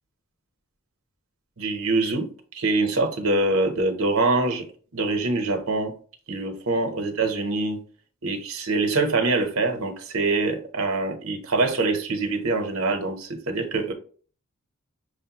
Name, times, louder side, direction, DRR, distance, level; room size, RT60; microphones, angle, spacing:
voice 1, 1.6-4.7 4.9-5.9 6.3-7.8 8.2-13.9, right 3 dB, 70° right, 0.9 m, -24 dB
6.3 x 2.2 x 2.9 m
head